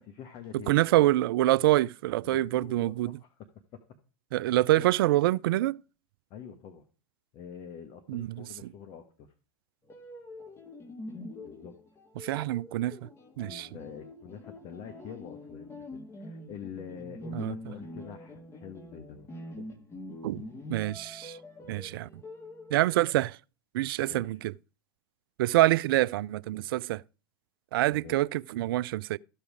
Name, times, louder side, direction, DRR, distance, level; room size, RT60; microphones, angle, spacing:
voice 1, 0.0-1.0 2.2-3.8 4.7-4.9 6.3-6.9 7.3-9.3 11.4-11.7 13.4-19.3 21.6-21.8 24.0-24.4 27.9-28.2, left 7 dB, 45° left, 1.3 m, -46 dB
voice 2, 0.7-3.2 4.3-5.8 8.1-8.4 12.2-13.0 13.4-13.7 17.3-17.5 20.2-20.4 20.7-21.4 21.7-22.1 22.7-23.4 23.7-24.5 25.4-27.0 27.7-29.2, right 16 dB, 65° right, 0.4 m, -26 dB
sound 1, 9.8-23.2, left 1 dB, 20° left, 1.9 m, -45 dB
14.0 x 5.6 x 4.9 m
hypercardioid pair, 100°, 13 cm